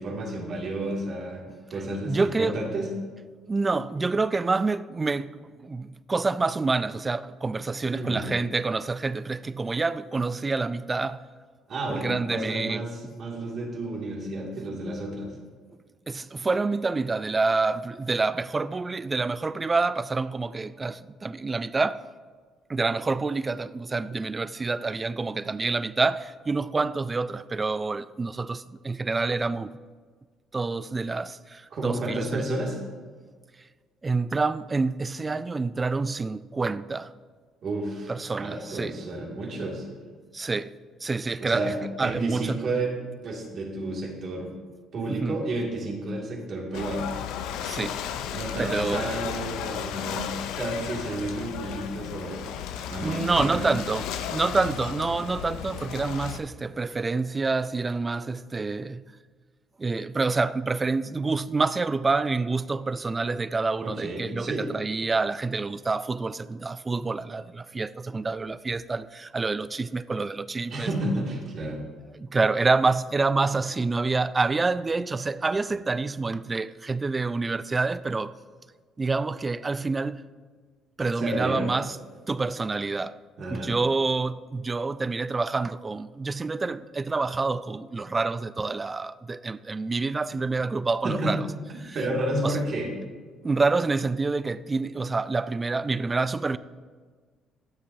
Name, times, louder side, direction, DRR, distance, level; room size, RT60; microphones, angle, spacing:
voice 1, 0.0-2.9 7.9-8.3 11.7-15.3 31.7-32.8 37.6-38.1 38.4-39.9 41.4-42.9 43.2-44.5 44.9-47.1 48.3-52.5 52.9-53.7 63.8-64.7 70.7-71.8 81.2-81.7 83.4-83.8 91.0-91.4 91.7-92.9, right 1 dB, 55° right, 2.3 m, -31 dB
voice 2, 2.1-2.6 3.5-11.3 11.9-12.8 16.1-22.0 22.7-29.8 30.5-32.4 34.0-37.1 38.1-39.0 40.3-40.7 41.0-42.6 45.1-45.4 47.6-48.0 48.6-49.1 53.0-59.0 59.8-70.9 72.2-78.3 79.0-80.2 81.0-82.0 82.3-83.2 83.5-91.5 91.8-92.0 92.4-92.6 93.4-96.6, right 3 dB, 25° right, 0.3 m, -27 dB
Ocean / Boat Water vehicle, 46.7-56.4, left 9 dB, 85° left, 0.5 m, -34 dB
13.0 x 7.2 x 2.7 m
cardioid pair, 100°, 0 cm